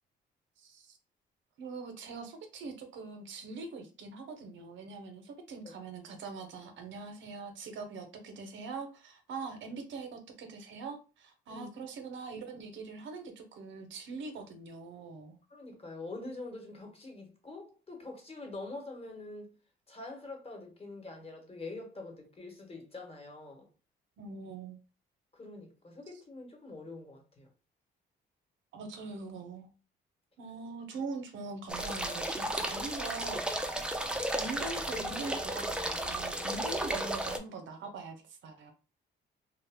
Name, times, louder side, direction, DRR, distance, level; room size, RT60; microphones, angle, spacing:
voice 1, 0.6-1.0 1.6-15.4 24.2-24.8 28.7-29.7 30.4-33.4 34.3-38.7, right 4 dB, 75° right, 0.6 m, -43 dB
voice 2, 15.5-19.5 19.9-23.7 25.3-27.5, left 2 dB, 30° left, 1.1 m, -45 dB
sound 1, 31.7-37.4, right 1 dB, 5° right, 0.4 m, -34 dB
2.4 x 2.1 x 3.4 m
cardioid pair, 90°, 20 cm